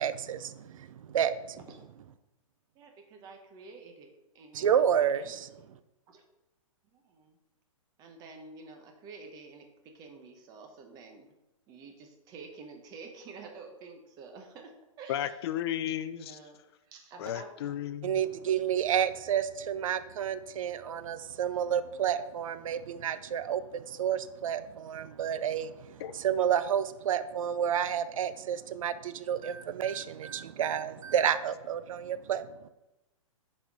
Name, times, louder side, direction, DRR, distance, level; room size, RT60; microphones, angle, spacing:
voice 1, 0.0-1.6 4.5-5.5 18.0-32.7, right 9 dB, 75° right, 14 dB, 0.5 m, -30 dB
voice 2, 2.7-4.7 4.9-5.8 6.1-6.2 6.9-7.4 8.0-11.3 11.7-14.7 15.0-15.4 16.1-16.6 16.8-17.8, right 4 dB, 20° right, 4 dB, 0.9 m, -49 dB
voice 3, 15.1-16.4 17.2-18.2 26.0-26.1, left 11 dB, 45° left, 12 dB, 0.5 m, -34 dB
6.8 x 4.3 x 4.7 m, 0.96 s
hypercardioid pair, 150°, 18 cm